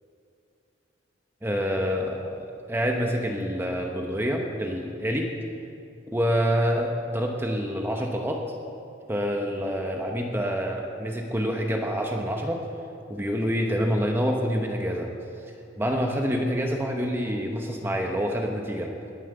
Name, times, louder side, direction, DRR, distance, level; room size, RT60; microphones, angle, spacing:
voice 1, 1.4-5.3 6.1-8.4 9.1-12.6 13.1-15.1 15.8-18.9, equal, 10° right, 1 dB, 0.9 m, -27 dB
20.0 x 7.4 x 6.6 m, 2.6 s
head